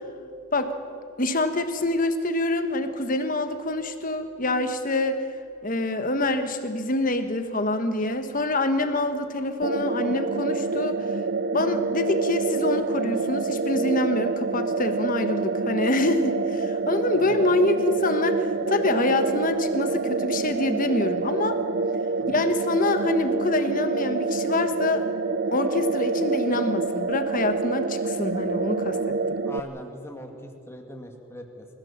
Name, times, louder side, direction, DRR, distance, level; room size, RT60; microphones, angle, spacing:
voice 1, 1.2-5.2 5.6-11.1 11.5-21.6 22.3-25.0 25.5-29.4, left 2 dB, 35° left, 8 dB, 1.4 m, -26 dB
sound 1, 9.6-29.6, right 4 dB, 45° right, 0.5 m, -27 dB
voice 2, 17.1-17.5 22.2-22.5 29.4-31.7, left 1 dB, 10° left, 3 dB, 2.1 m, -41 dB
28.0 x 16.0 x 7.3 m, 2.9 s
head